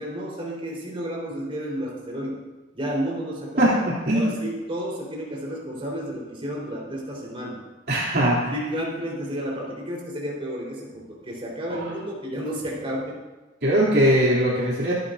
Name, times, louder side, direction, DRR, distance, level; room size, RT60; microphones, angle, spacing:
voice 1, 0.0-2.4 2.7-3.7 4.1-7.6 8.5-13.2, equal, 30° right, -3 dB, 4.3 m, -31 dB
voice 2, 3.6-4.4 7.9-8.5 11.7-11.8 13.6-14.9, equal, 55° right, -6 dB, 3.2 m, -21 dB
24.0 x 11.5 x 2.7 m, 1.1 s
head